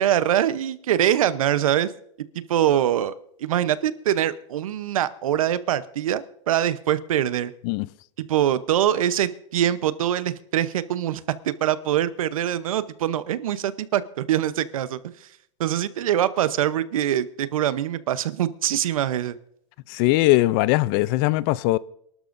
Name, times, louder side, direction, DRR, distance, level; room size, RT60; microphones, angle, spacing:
voice 1, 0.0-1.9 2.3-3.1 3.4-7.5 8.2-15.3 15.6-19.4, right 11 dB, 85° right, 0.8 m, -23 dB
voice 2, 19.9-21.8, left 18 dB, 45° left, 0.4 m, -20 dB
27.5 x 12.5 x 2.6 m
supercardioid pair, 140°, 17 cm